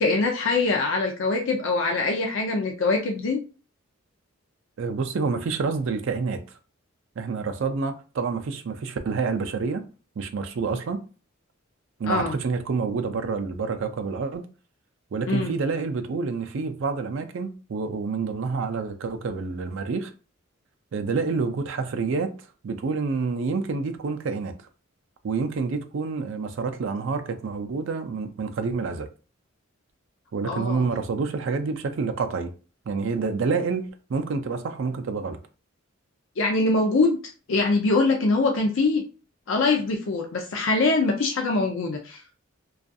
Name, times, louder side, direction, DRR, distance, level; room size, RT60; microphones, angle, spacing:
voice 1, 0.0-3.4 12.0-12.4 15.3-15.5 30.4-30.8 36.4-37.2 37.5-39.0 39.5-42.2, left 3 dB, 60° left, 0.4 m, -23 dB
voice 2, 4.8-6.4 7.2-9.8 10.2-11.0 12.0-14.5 15.1-20.1 20.9-22.3 22.6-24.7 25.2-29.1 30.3-32.5 32.9-35.4, right 4 dB, 60° right, 0.4 m, -28 dB
2.4 x 2.3 x 2.5 m
head